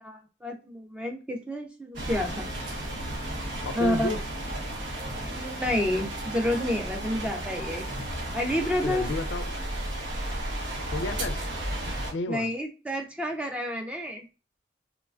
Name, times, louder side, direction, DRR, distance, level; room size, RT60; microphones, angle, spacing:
voice 1, 0.0-2.5 3.7-4.1 5.3-7.9 8.3-9.1 12.3-14.2, left 1 dB, 5° right, 0.4 m, -29 dB
sound 1, 1.9-12.1, right 1 dB, 90° right, 0.8 m, -33 dB
voice 2, 3.6-4.2 8.8-9.6 10.9-11.5 12.1-12.5, left 2 dB, 80° left, 0.4 m, -31 dB
3.1 x 2.2 x 2.4 m
head